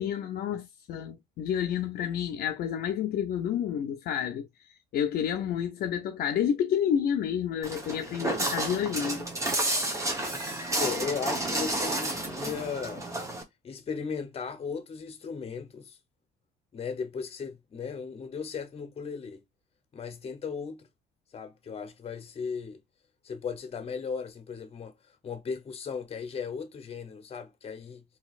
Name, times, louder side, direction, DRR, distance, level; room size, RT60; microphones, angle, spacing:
voice 1, 0.0-4.5 4.9-9.3, left 9 dB, 65° left, 0.6 m, -29 dB
Walk footsteps, 7.6-13.4, right 1 dB, 20° right, 0.9 m, -31 dB
voice 2, 10.8-13.1 13.6-16.0 16.7-19.4 19.9-20.9 21.3-22.8 23.2-24.9 25.2-28.0, left 6 dB, 35° left, 0.9 m, -36 dB
3.8 x 2.9 x 2.4 m
cardioid pair, 110°, 17 cm